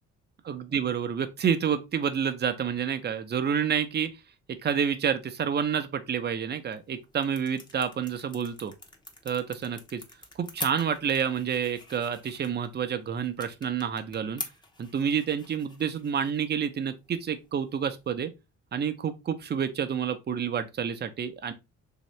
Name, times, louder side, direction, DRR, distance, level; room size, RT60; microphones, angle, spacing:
voice 1, 0.5-4.1 4.6-8.7 9.2-10.0 10.4-14.4 14.8-18.3 18.7-21.5, right 7 dB, 35° right, 0.6 m, -29 dB
sound 1, 6.5-18.1, left 2 dB, 15° left, 0.8 m, -45 dB
3.2 x 2.8 x 3.1 m
cardioid pair, 90°, 30 cm